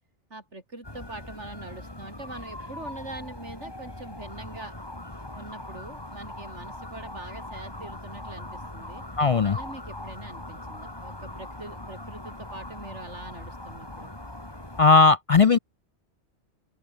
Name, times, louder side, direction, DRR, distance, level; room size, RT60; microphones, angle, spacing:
voice 1, 0.3-4.7 5.3-9.0 9.4-14.1, right 2 dB, 85° right, 5.1 m, -43 dB
sound 1, 0.8-14.8, left 1 dB, 20° left, 2.7 m, -40 dB
voice 2, 9.2-9.6 14.8-15.6, left 4 dB, 50° left, 0.4 m, -17 dB
open air
omnidirectional pair, 1.2 m